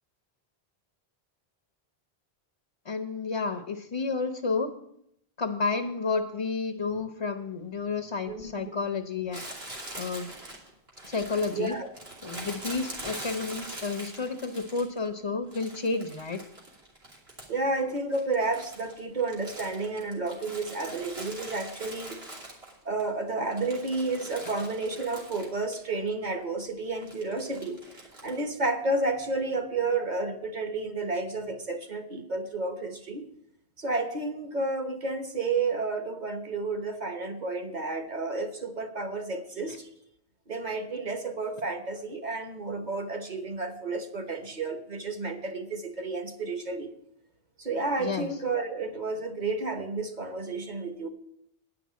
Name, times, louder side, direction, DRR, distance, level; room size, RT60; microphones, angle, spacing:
voice 1, 2.8-4.7 5.4-9.4 9.9-10.3 11.0-11.8 12.2-16.4 39.7-39.8 48.0-48.3, left 4 dB, 35° left, 5 dB, 0.7 m, -31 dB
voice 2, 8.3-9.0 11.5-11.9 17.5-22.2 22.8-27.8 28.2-33.2 33.8-39.9 40.5-46.9 47.6-51.1, right 3 dB, 45° right, 6 dB, 1.2 m, -31 dB
Crumpling crinkling, 9.3-15.1 15.5-17.7 18.0-23.0 23.4-25.8 26.1-26.2 27.0-28.4, right 1 dB, 75° right, 3.1 m, -43 dB
10.0 x 5.9 x 8.3 m, 0.75 s
omnidirectional pair, 1.1 m